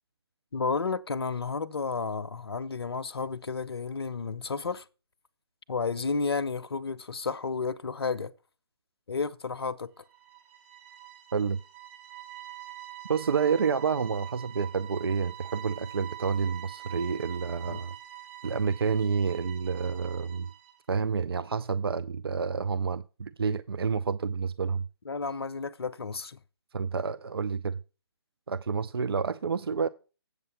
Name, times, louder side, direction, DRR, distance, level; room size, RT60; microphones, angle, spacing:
voice 1, 0.5-4.8 5.7-8.3 9.1-10.0 17.7-17.8 25.1-26.4, left 4 dB, 65° left, 0.6 m, -32 dB
sound 1, 10.0-20.8, right 14 dB, 30° right, 4.6 m, -45 dB
voice 2, 13.1-18.0 18.4-20.5 20.9-24.9 26.7-27.8 28.5-29.9, right 5 dB, 65° right, 0.4 m, -29 dB
8.2 x 6.7 x 5.2 m
figure-of-eight pair, 140°, 14 cm